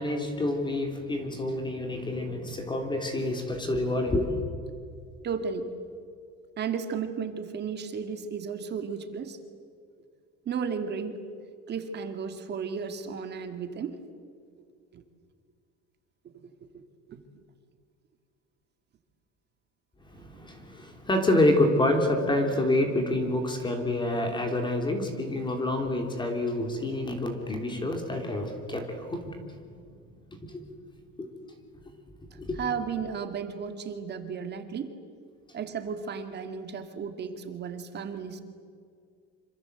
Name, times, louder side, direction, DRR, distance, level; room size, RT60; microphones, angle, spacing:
voice 1, 0.0-4.3 20.0-29.6 30.3-30.7 31.2-31.3 32.3-32.6, left 1 dB, 15° left, 4 dB, 3.2 m, -28 dB
voice 2, 5.2-5.7 6.6-9.4 10.5-11.2 11.7-14.0 14.9-15.0 16.7-17.2 32.6-34.9 35.5-38.4, right 6 dB, 35° right, 7 dB, 2.3 m, -34 dB
27.0 x 26.0 x 8.1 m, 2.2 s
cardioid pair, 165°, 30 cm